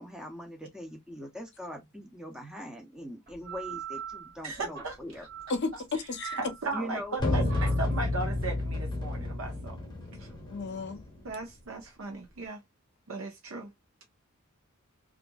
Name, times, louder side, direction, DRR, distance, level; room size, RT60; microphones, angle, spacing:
voice 1, 0.0-5.3 6.7-7.2, equal, 5° right, 0.6 m, -41 dB
sound 1, 3.3-12.5, right 8 dB, 45° right, 0.9 m, -45 dB
voice 2, 4.4-5.0 5.9-6.0 6.4-9.9 10.2-10.3 11.2-12.6 13.1-13.7, right 3 dB, 70° right, 0.7 m, -37 dB
voice 3, 5.5-6.4 7.2-7.5 10.5-11.0, left 3 dB, 55° left, 0.6 m, -33 dB
sound 2, 7.2-11.2, left 2 dB, 20° left, 1.0 m, -31 dB
2.8 x 2.5 x 2.2 m
head